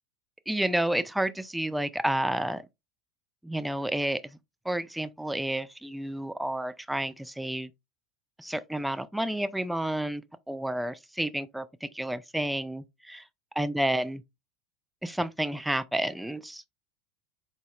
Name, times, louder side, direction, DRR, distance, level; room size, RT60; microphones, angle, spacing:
voice 1, 0.5-2.6 3.4-4.4 4.6-7.7 8.4-13.2 13.6-14.2 15.0-16.6, right 1 dB, 5° right, 0.4 m, -30 dB
4.8 x 4.0 x 2.4 m
figure-of-eight pair, 75°, 0 cm